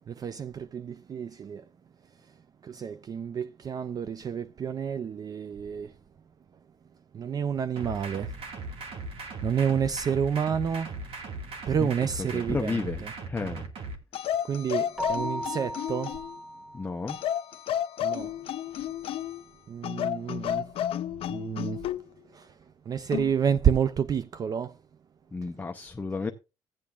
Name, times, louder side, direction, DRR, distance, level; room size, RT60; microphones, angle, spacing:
voice 1, 0.1-1.7 2.2-2.3 2.6-5.9 7.1-8.3 8.7-8.8 9.4-11.0 11.7-13.1 14.4-16.2 18.0-18.4 19.7-20.7 21.3-21.9 22.2-24.8, right 7 dB, 40° right, 0.4 m, -29 dB
sound 1, 7.8-14.0, right 2 dB, 70° right, 1.8 m, -38 dB
voice 2, 12.3-13.7 16.7-17.2 25.3-26.3, left 4 dB, 15° left, 0.7 m, -32 dB
sound 2, 14.1-16.4 17.1-19.4 19.8-22.0 23.1-23.4, left 10 dB, 70° left, 0.5 m, -32 dB
Keyboard (musical), 15.0-17.4, equal, 5° right, 1.0 m, -37 dB
15.0 x 8.5 x 2.3 m
cardioid pair, 115°, 10 cm